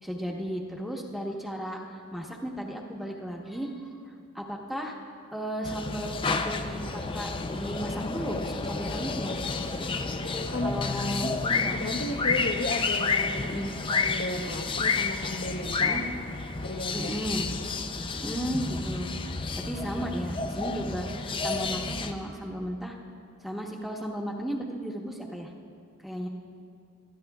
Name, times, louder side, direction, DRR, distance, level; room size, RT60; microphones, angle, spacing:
voice 1, 0.0-5.0 5.3-9.3 10.6-11.8 13.4-13.7 15.8-16.0 16.9-17.5 18.2-19.1 19.5-23.0 23.4-25.5 26.0-26.3, equal, ahead, 0 dB, 1.0 m, -35 dB
sound 1, 5.6-22.1, left 4 dB, 25° left, 0.5 m, -30 dB
voice 2, 11.8-16.0 16.6-17.2, left 2 dB, 45° left, 5 dB, 0.8 m, -34 dB
24.5 x 13.0 x 2.3 m, 2.5 s
head